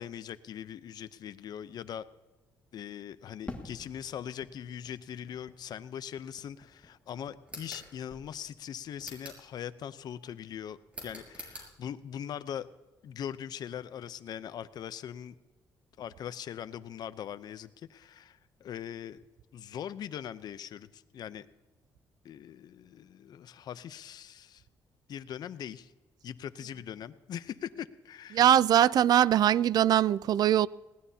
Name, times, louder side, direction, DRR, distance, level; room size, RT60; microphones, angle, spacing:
voice 1, 0.0-2.1 2.7-12.7 13.0-15.3 16.0-19.2 19.5-21.5 22.2-24.6 25.1-25.9 26.2-28.4, left 9 dB, 60° left, 0.7 m, -41 dB
Fireworks, 3.5-7.8 8.1-8.9, left 2 dB, 15° left, 1.6 m, -49 dB
sound 1, 7.4-7.9 9.0-9.5 10.9-11.7, equal, 15° right, 6.1 m, -45 dB
voice 2, 28.3-30.7, right 11 dB, 60° right, 0.4 m, -22 dB
20.5 x 18.0 x 2.8 m
cardioid pair, 115°, 8 cm